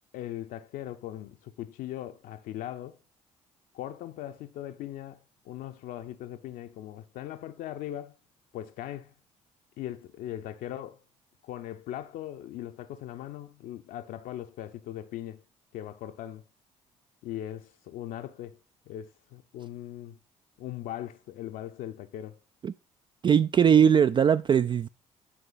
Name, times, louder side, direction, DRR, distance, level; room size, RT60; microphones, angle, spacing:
voice 1, 0.1-3.0 3.7-8.2 8.5-9.1 9.8-11.0 11.4-15.4 15.7-16.4 17.2-18.6 18.9-20.2 20.6-22.4, left 12 dB, 65° left, 0.7 m, -39 dB
voice 2, 23.2-24.9, right 8 dB, 30° right, 0.4 m, -20 dB
11.0 x 4.6 x 3.9 m
hypercardioid pair, 50°, 16 cm